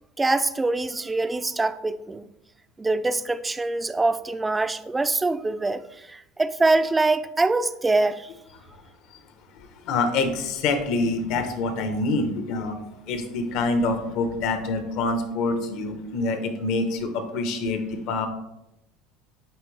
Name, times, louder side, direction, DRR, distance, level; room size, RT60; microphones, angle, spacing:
voice 1, 0.2-2.2 2.8-5.8 6.1-8.3, right 2 dB, 15° right, 13 dB, 0.4 m, -24 dB
voice 2, 9.8-12.8 13.1-18.3, left 3 dB, 65° left, 7 dB, 1.0 m, -26 dB
9.1 x 3.4 x 3.3 m, 0.88 s
supercardioid pair, 105°, 0 cm